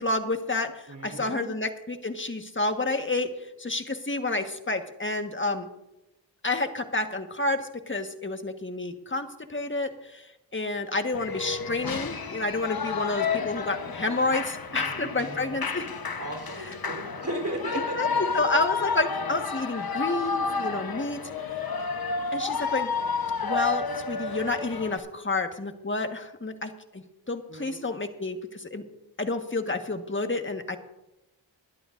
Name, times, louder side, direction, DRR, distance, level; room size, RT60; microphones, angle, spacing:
voice 1, 0.0-3.3 3.6-5.7 6.4-10.2 10.5-15.9 18.0-18.1 18.3-21.2 21.5-21.6 22.3-22.9 23.4-28.8 29.2-30.8, left 2 dB, 25° left, 6 dB, 1.5 m, -29 dB
voice 2, 0.9-1.6 14.8-15.4 16.2-18.2 27.5-27.8, right 1 dB, 45° right, 1 dB, 3.8 m, -36 dB
Shout / Cheering, 11.1-25.0, left 5 dB, 55° left, 1.1 m, -31 dB
22.0 x 11.0 x 2.6 m, 0.93 s
cardioid pair, 40°, 44 cm